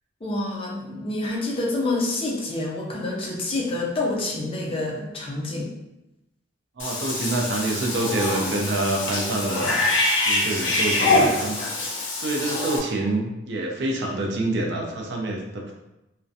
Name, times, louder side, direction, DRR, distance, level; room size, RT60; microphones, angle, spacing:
voice 1, 0.2-5.7, left 2 dB, 30° left, -2 dB, 0.4 m, -27 dB
Cat / Bathtub (filling or washing), 6.8-12.8, left 2 dB, 80° left, 0.5 m, -24 dB
voice 2, 6.8-9.8 10.3-11.6 12.2-15.7, right 2 dB, 60° right, 0 dB, 0.4 m, -26 dB
2.4 x 2.1 x 2.6 m, 0.93 s
head